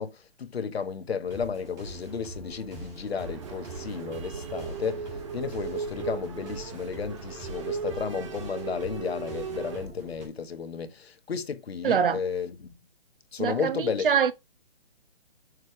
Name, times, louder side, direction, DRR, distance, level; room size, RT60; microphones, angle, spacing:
voice 1, 0.0-12.8 13.3-14.1, left 6 dB, 75° left, 1.3 m, -33 dB
sound 1, 1.2-10.3, right 1 dB, 10° right, 1.7 m, -43 dB
sound 2, 3.1-9.9, right 6 dB, 30° right, 1.0 m, -37 dB
voice 2, 11.8-12.2 13.4-14.3, right 7 dB, 55° right, 1.0 m, -24 dB
6.5 x 4.6 x 4.8 m
hypercardioid pair, 165°, 31 cm